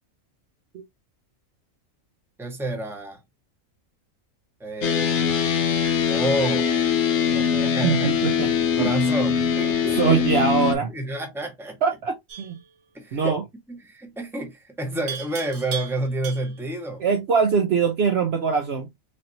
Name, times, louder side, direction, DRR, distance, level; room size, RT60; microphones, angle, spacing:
voice 1, 2.4-3.2 4.6-5.3 6.1-6.7 7.3-8.1 8.5-10.2 10.7-11.8 12.9-13.4 13.7-17.0, right 1 dB, ahead, 0.9 m, -29 dB
sound 1, 4.8-10.8, left 7 dB, 65° left, 0.9 m, -22 dB
voice 2, 7.8-8.5 8.8-8.9 9.9-10.9 11.8-12.6 13.1-13.4 17.0-18.9, right 6 dB, 60° right, 0.8 m, -22 dB
Livestock farm animals working animals, 12.3-12.6 15.1-16.7, right 8 dB, 75° right, 1.4 m, -36 dB
4.0 x 3.2 x 2.7 m
omnidirectional pair, 1.4 m